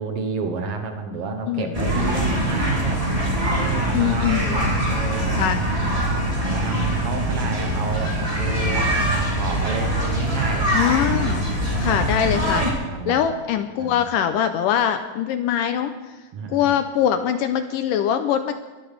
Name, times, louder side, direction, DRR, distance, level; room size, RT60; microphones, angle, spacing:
voice 1, 0.0-3.1 3.5-6.1 6.4-10.7 11.6-12.5 12.8-13.2 13.8-14.0 16.3-16.6, right 4 dB, 70° right, 5 dB, 1.4 m, -31 dB
sound 1, 1.7-12.7, right 1 dB, 10° right, 2.1 m, -23 dB
voice 2, 3.9-4.5 5.3-5.6 10.7-11.5 11.8-12.7 13.1-15.9 16.5-18.5, left 9 dB, 80° left, 8 dB, 2.1 m, -22 dB
23.5 x 12.5 x 3.4 m, 1.2 s
omnidirectional pair, 4.3 m